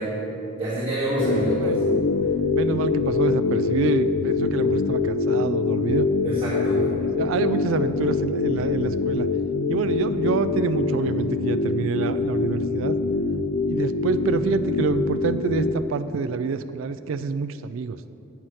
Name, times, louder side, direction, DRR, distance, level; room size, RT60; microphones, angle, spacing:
voice 1, 0.0-1.8 6.2-6.8, right 2 dB, 30° right, -9 dB, 1.9 m, -27 dB
sound 1, 1.2-15.7, left 4 dB, 70° left, 0.5 m, -24 dB
voice 2, 2.5-6.1 6.9-9.3 9.7-13.0 13.7-18.0, right 5 dB, 90° right, 12 dB, 0.4 m, -27 dB
8.1 x 5.9 x 7.5 m, 2.8 s
head